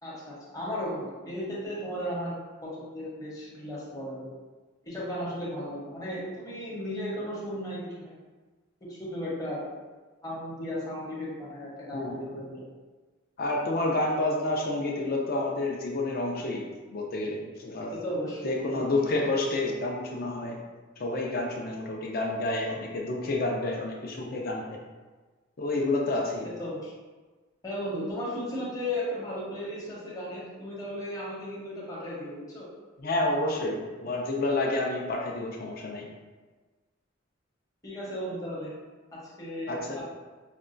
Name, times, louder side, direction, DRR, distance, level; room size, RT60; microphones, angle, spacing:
voice 1, 0.0-2.3 2.6-4.3 4.8-8.1 8.8-9.6 10.2-12.6 18.0-18.9 26.6-26.9 27.6-32.7 37.8-38.7 39.1-40.0, equal, 15° left, -7 dB, 0.8 m, -35 dB
voice 2, 11.9-12.3 13.4-17.9 18.4-20.6 21.0-24.8 25.6-26.5 33.0-36.1 39.7-40.0, left 2 dB, 50° left, 0 dB, 0.5 m, -29 dB
5.2 x 2.2 x 2.5 m, 1.3 s
head